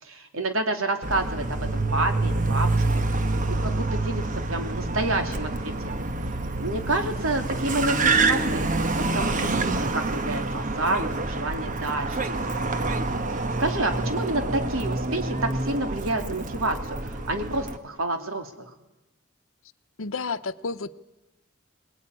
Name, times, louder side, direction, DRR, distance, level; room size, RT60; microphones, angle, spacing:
voice 1, 0.0-3.0 3.5-6.0 6.6-8.7 8.9-12.3 12.6-12.9 13.3-18.7, right 2 dB, 90° right, 5 dB, 3.0 m, -29 dB
Car, 1.0-17.8, right 2 dB, 40° right, 1.2 m, -27 dB
voice 2, 20.0-20.9, left 4 dB, 75° left, 12 dB, 0.9 m, -31 dB
23.0 x 20.5 x 9.9 m, 1.0 s
head